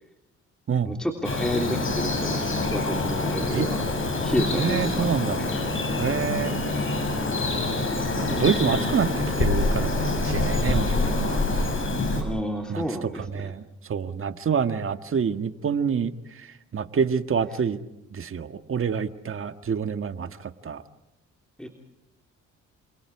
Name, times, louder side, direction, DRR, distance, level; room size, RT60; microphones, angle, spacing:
voice 1, 0.8-3.8 4.2-5.1 5.3-5.7 12.2-13.5 21.6-21.7, equal, 5° left, 2 dB, 3.3 m, -30 dB
Bird vocalization bird call bird song, 1.2-12.2, left 2 dB, 40° left, 6.9 m, -26 dB
voice 2, 4.5-5.4 6.0-6.5 8.2-11.4 12.7-12.8 13.3-13.6 13.9-16.1 16.4-16.5 16.7-17.8 18.1-20.8, right 6 dB, 45° right, 9 dB, 1.6 m, -27 dB
29.0 x 27.0 x 4.9 m, 0.88 s
cardioid pair, 90°, 30 cm